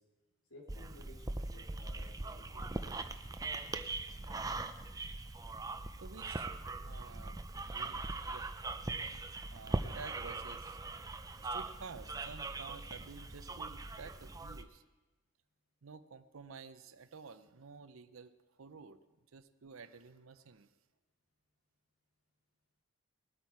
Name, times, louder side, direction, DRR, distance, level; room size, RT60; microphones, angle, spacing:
voice 1, 0.5-3.3, left 1 dB, 90° left, -1 dB, 3.2 m, -57 dB
sound 1, 0.7-14.6, right 2 dB, 15° right, 0.5 m, -41 dB
voice 2, 6.0-6.5 6.8-7.4 7.7-8.5 9.5-10.8 11.4-14.8 15.8-19.0 19.3-20.7, right 4 dB, 75° right, 11 dB, 0.6 m, -51 dB
20.5 x 8.6 x 4.7 m, 1.2 s
head